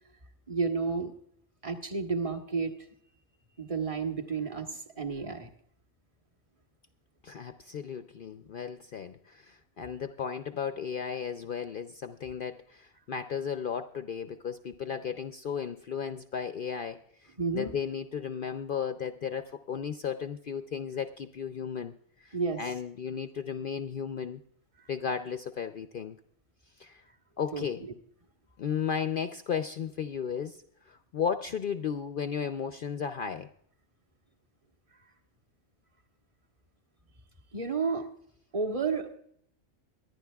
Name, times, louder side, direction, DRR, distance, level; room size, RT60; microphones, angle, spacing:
voice 1, 0.5-1.1 1.6-2.7 3.6-5.5 17.4-17.7 22.3-22.7 27.5-27.9 37.5-38.0 38.5-39.2, right 4 dB, 25° right, 4 dB, 1.2 m, -31 dB
voice 2, 7.2-17.0 17.5-21.9 22.2-24.4 24.9-26.2 26.8-27.0 27.4-27.8 28.6-30.6 30.9-33.5, left 7 dB, 60° left, 9 dB, 0.5 m, -34 dB
23.5 x 11.0 x 2.3 m, 0.67 s
omnidirectional pair, 1.4 m